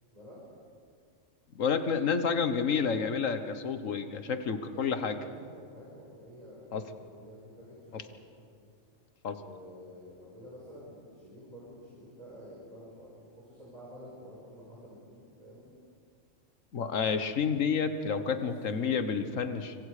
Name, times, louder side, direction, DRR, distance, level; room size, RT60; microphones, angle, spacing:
voice 1, 1.5-5.2 6.7-6.8 7.9-8.0 9.2-9.4 16.7-19.8, left 6 dB, 85° left, 9 dB, 1.6 m, -29 dB
voice 2, 4.5-8.5 9.3-15.7 18.2-19.2, equal, 30° right, -7 dB, 5.6 m, -50 dB
25.5 x 25.5 x 5.0 m, 2.2 s
omnidirectional pair, 1.3 m